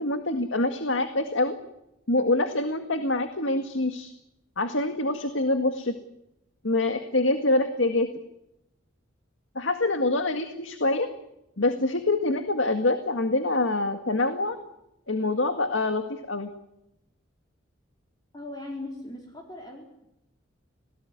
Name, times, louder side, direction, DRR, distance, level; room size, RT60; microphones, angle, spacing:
voice 1, 0.0-1.6 2.1-4.1 4.6-6.0 6.6-8.1 9.6-11.1 11.6-14.6 15.1-16.5, left 2 dB, 80° left, 7 dB, 1.9 m, -25 dB
voice 2, 18.3-20.0, left 2 dB, 20° left, 0 dB, 4.2 m, -39 dB
26.5 x 18.5 x 9.7 m, 0.86 s
head